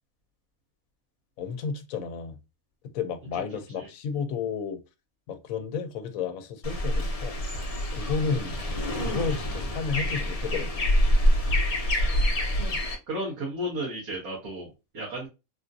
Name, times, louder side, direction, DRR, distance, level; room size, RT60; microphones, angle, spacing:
voice 1, 1.4-2.4 2.9-4.8 5.3-7.4 7.9-8.6 9.0-10.9, left 6 dB, 75° left, 1.0 m, -32 dB
sound 1, 6.6-12.9, equal, 45° left, 0.4 m, -26 dB
voice 2, 13.1-15.3, equal, 90° right, 1.5 m, -33 dB
3.5 x 2.5 x 2.6 m
omnidirectional pair, 1.5 m